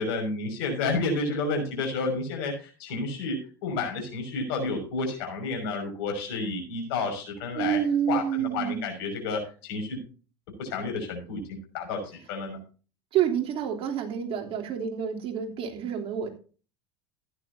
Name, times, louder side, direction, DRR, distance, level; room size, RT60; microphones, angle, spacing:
voice 1, 0.0-7.8 8.1-10.0 10.6-11.4 11.7-12.0 12.3-12.6, left 3 dB, 65° left, 4 dB, 5.8 m, -30 dB
voice 2, 7.5-8.9 13.1-16.3, right 9 dB, 45° right, 1 dB, 3.2 m, -28 dB
15.5 x 10.5 x 2.7 m, 0.37 s
hypercardioid pair, 80°, 13 cm